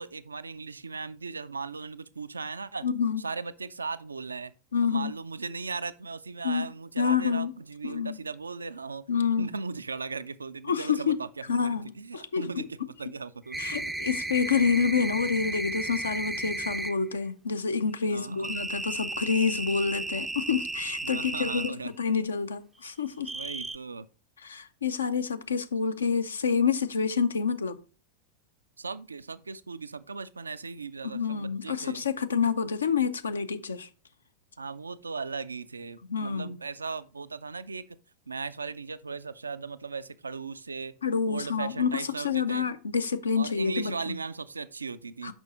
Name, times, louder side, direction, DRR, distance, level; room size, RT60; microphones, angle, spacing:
voice 1, 0.0-2.9 3.2-4.5 4.8-13.9 18.1-18.5 21.0-22.1 23.3-24.1 28.8-32.0 34.6-38.0 38.3-40.9 41.3-42.7 43.3-45.3, right 4 dB, 75° right, 0.4 m, -38 dB
voice 2, 2.8-3.2 4.7-5.1 6.4-6.6 7.0-7.5 7.8-8.2 9.1-9.5 10.7-11.2 11.5-12.6 13.6-23.3 24.4-27.8 31.0-33.9 36.1-36.6 41.0-44.2 45.2-45.3, left 6 dB, 70° left, 0.6 m, -28 dB
sound 1, 13.5-17.0 18.4-21.7 23.2-23.8, right 2 dB, 10° right, 0.4 m, -34 dB
6.1 x 5.4 x 3.9 m
figure-of-eight pair, 90°, 0 cm